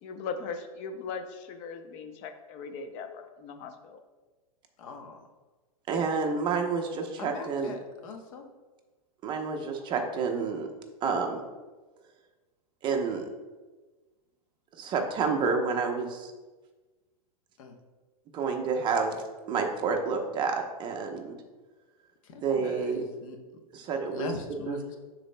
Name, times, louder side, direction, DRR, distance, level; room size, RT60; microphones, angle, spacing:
voice 1, 0.0-4.0, left 5 dB, 35° left, 7 dB, 0.6 m, -39 dB
voice 2, 4.8-5.2 7.2-8.4 17.6-17.7 22.2-23.4 24.1-25.0, left 3 dB, 55° left, 4 dB, 1.0 m, -40 dB
voice 3, 5.9-7.7 9.2-10.7 11.0-11.4 12.8-13.3 14.8-16.3 18.3-19.2 19.5-21.4 22.4-23.0 23.7-24.3 24.7-25.0, right 5 dB, 25° right, 3 dB, 0.7 m, -29 dB
12.0 x 4.1 x 2.2 m, 1.3 s
hypercardioid pair, 140°, 20 cm